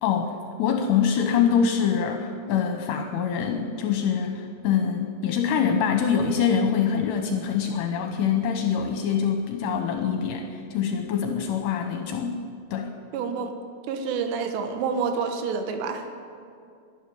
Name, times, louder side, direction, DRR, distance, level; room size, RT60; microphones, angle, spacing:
voice 1, 0.0-12.4 12.7-12.9, left 7 dB, 75° left, 4 dB, 2.9 m, -24 dB
voice 2, 13.1-13.5 13.9-16.1, right 5 dB, 75° right, 5 dB, 3.3 m, -28 dB
12.5 x 11.5 x 9.7 m, 2.3 s
omnidirectional pair, 5.2 m